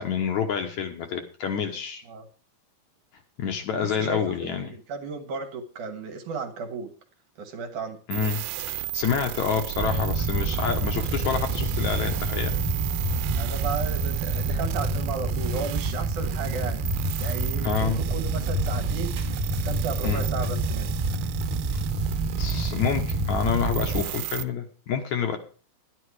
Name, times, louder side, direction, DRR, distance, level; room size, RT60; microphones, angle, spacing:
voice 1, 0.0-2.0 3.4-4.7 8.1-12.6 17.6-18.0 20.0-20.2 21.7-21.9 22.4-25.4, left 7 dB, 65° left, 5 dB, 2.2 m, -28 dB
voice 2, 3.7-6.9 7.4-8.0 13.3-16.8 17.2-19.2 19.5-20.9, right 5 dB, 60° right, 6 dB, 2.7 m, -34 dB
sound 1, 8.1-24.4, right 15 dB, 85° right, 2.6 m, -35 dB
sound 2, 9.7-24.0, right 2 dB, 40° right, 1.7 m, -28 dB
11.0 x 11.0 x 4.8 m, 0.38 s
omnidirectional pair, 4.3 m